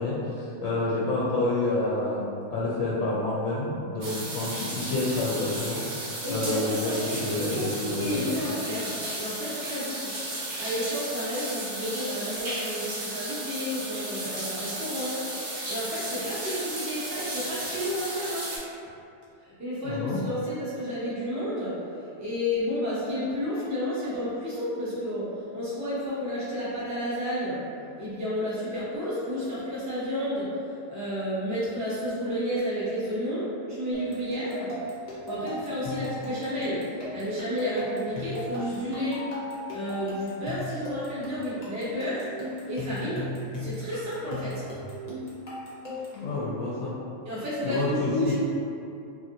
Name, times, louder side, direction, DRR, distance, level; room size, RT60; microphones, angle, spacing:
voice 1, 0.0-8.3 19.8-20.2 46.1-46.9 47.6-48.3, left 2 dB, 70° left, -6 dB, 0.9 m, -29 dB
sound 1, 4.0-18.6, right 1 dB, 75° right, 1.3 m, -34 dB
voice 2, 6.2-10.2 10.6-18.5 19.4-21.7 22.2-27.6 28.0-34.7 35.1-36.8 37.1-39.2 39.7-42.3 42.7-43.3 43.5-44.6 47.2-48.3, equal, 20° right, -10 dB, 0.5 m, -31 dB
sound 2, 33.9-46.2, left 1 dB, 40° left, 0.6 m, -37 dB
3.1 x 2.5 x 2.7 m, 2.7 s
omnidirectional pair, 1.6 m